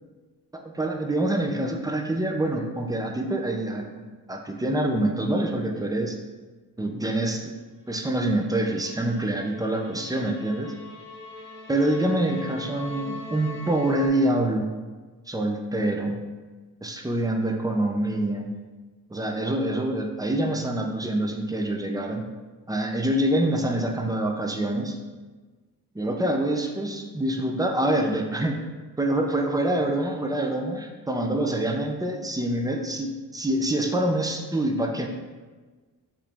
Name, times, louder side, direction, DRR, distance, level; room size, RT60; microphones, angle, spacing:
voice 1, 0.5-6.1 6.8-7.5 7.9-10.7 11.7-14.7 15.3-16.2 16.8-18.5 19.1-22.3 22.7-25.0 25.9-28.6 29.0-35.1, right 1 dB, 10° right, 3 dB, 0.4 m, -26 dB
sound 1, 8.2-14.1, left 2 dB, 30° left, 1.4 m, -41 dB
4.7 x 3.2 x 3.4 m, 1.3 s
cardioid pair, 105°, 38 cm